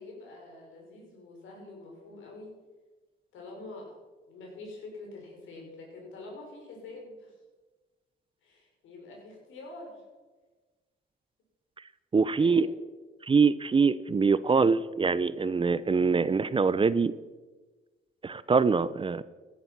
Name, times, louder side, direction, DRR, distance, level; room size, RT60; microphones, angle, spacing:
voice 1, 0.0-2.5 3.3-4.0 4.3-7.4 8.4-10.0 12.4-12.8, left 2 dB, 80° left, -1 dB, 6.0 m, -46 dB
voice 2, 12.1-12.7 13.3-17.1 18.2-19.2, right 5 dB, 25° right, 17 dB, 0.6 m, -24 dB
16.0 x 11.0 x 6.0 m, 1.3 s
cardioid pair, 90°, 20 cm